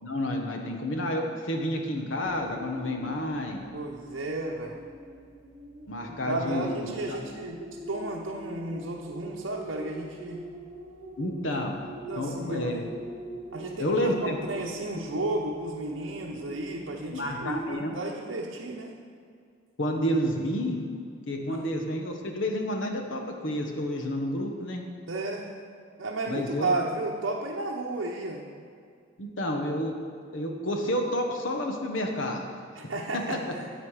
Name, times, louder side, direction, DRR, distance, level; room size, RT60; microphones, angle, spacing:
voice 1, 0.0-3.6 5.9-7.2 11.2-11.8 12.2-12.9 13.8-14.4 17.0-18.0 19.8-20.8 21.3-24.8 26.3-26.7 29.2-29.9 30.3-32.5 33.3-33.4, left 1 dB, 80° left, 2 dB, 1.3 m, -30 dB
sound 1, 2.2-17.7, right 1 dB, 50° right, 2.1 m, -44 dB
voice 2, 3.7-4.8 6.1-7.6 7.9-10.4 12.1-12.9 13.5-19.0 21.5-21.7 25.1-25.5 26.0-28.4 32.7-33.6, right 2 dB, 75° right, -2 dB, 0.9 m, -33 dB
10.5 x 8.2 x 4.9 m, 2.2 s
head